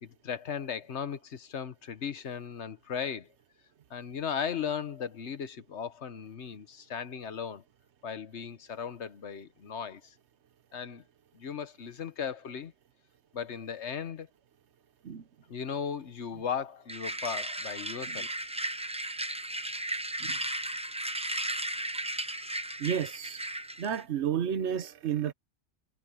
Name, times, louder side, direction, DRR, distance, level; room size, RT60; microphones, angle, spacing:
voice 1, 0.0-3.3 3.9-7.6 8.0-10.1 10.7-11.0 11.3-12.7 13.3-14.3 15.5-18.3, left 7 dB, 85° left, 1.4 m, -37 dB
sound 1, 16.9-24.0, right 1 dB, 5° right, 0.6 m, -35 dB
voice 2, 22.8-23.4 23.8-25.3, right 8 dB, 85° right, 1.2 m, -31 dB
omnidirectional pair, 1.1 m